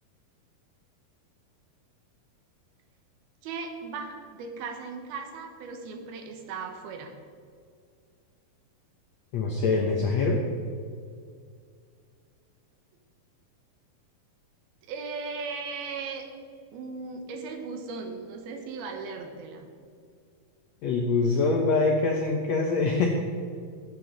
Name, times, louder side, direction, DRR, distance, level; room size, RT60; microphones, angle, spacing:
voice 1, 3.4-7.1 14.9-16.2 16.7-19.7, right 4 dB, 85° right, 4 dB, 3.1 m, -37 dB
voice 2, 9.3-10.4 20.8-23.1, left 3 dB, 75° left, 1 dB, 1.6 m, -24 dB
15.0 x 9.2 x 4.0 m, 2.2 s
omnidirectional pair, 4.3 m